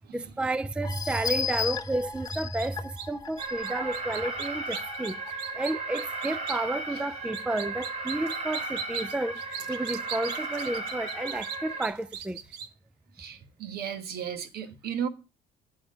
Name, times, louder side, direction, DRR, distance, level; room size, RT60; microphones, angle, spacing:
voice 1, 0.1-12.4, right 2 dB, 5° right, 0.4 m, -31 dB
sound 1, 0.8-5.3 5.8-5.9 6.3-6.4, left 6 dB, 20° left, 1.0 m, -35 dB
sound 2, 2.3-2.7 3.0-3.1 3.4-6.6 7.3-12.7, right 8 dB, 85° right, 1.0 m, -38 dB
Alarm, 3.4-11.9, right 3 dB, 40° right, 2.3 m, -35 dB
voice 2, 13.2-15.1, right 8 dB, 65° right, 1.4 m, -35 dB
8.6 x 6.0 x 6.5 m
cardioid pair, 110°, 17 cm